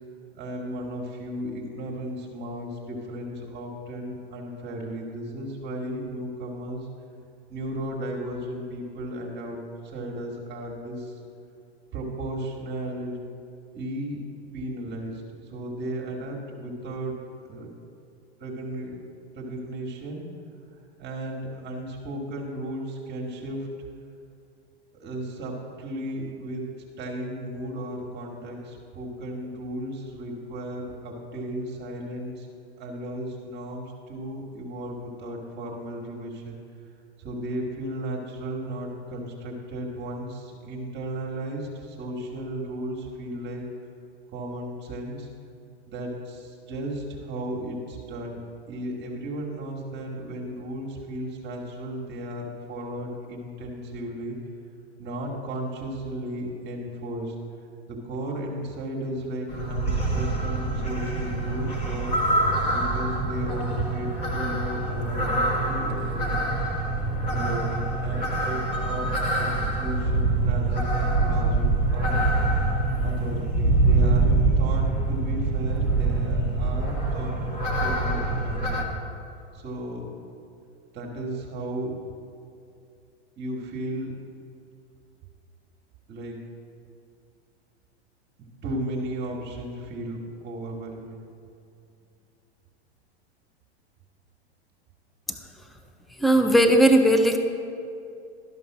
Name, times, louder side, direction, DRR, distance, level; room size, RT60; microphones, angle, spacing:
voice 1, 0.3-6.9 7.5-11.2 11.9-13.2 13.7-14.2 14.5-17.2 17.4-17.7 18.4-19.0 19.3-20.3 21.0-23.7 24.9-26.7 27.0-32.5 32.8-36.5 37.2-43.7 44.3-45.3 45.9-48.4 48.7-54.4 55.0-57.3 57.9-62.2 62.7-66.6 67.2-69.5 69.7-72.3 73.0-77.4 77.8-78.9 79.5-80.1 80.9-82.0 83.4-84.1 86.1-86.5 88.6-91.3, right 1 dB, 30° right, -1 dB, 1.5 m, -35 dB
sound 1, 59.5-78.8, right 2 dB, 30° left, 1.5 m, -25 dB
voice 2, 96.2-97.4, right 1 dB, ahead, 6 dB, 0.4 m, -17 dB
12.5 x 5.4 x 5.9 m, 2.5 s
hypercardioid pair, 120°, 33 cm